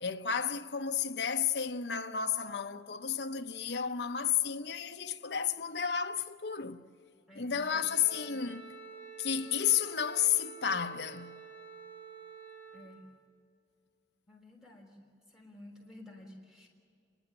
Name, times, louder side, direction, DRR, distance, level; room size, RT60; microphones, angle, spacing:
voice 1, 0.0-6.8 7.3-8.7 9.2-11.4, left 8 dB, 65° left, 0.8 m, -32 dB
voice 2, 7.3-7.8 12.7-13.0 14.3-15.1 15.3-16.7, left 1 dB, 5° right, 3.7 m, -52 dB
Wind instrument woodwind instrument, 7.7-12.9, right 5 dB, 30° right, 7.5 m, -49 dB
30.0 x 11.0 x 10.0 m
head